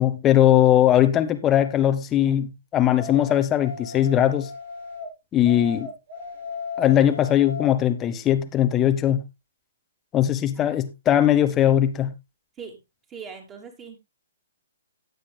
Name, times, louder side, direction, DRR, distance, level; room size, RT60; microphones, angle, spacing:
voice 1, 0.0-4.5 5.3-5.9 6.8-9.2 10.1-12.1, left 11 dB, 20° left, 1.1 m, -20 dB
sound 1, 3.0-5.1 5.4-7.7, left 5 dB, 60° right, 5.7 m, -36 dB
voice 2, 13.1-14.0, right 6 dB, 20° right, 3.1 m, -40 dB
17.5 x 8.1 x 2.2 m
figure-of-eight pair, 125°, 0 cm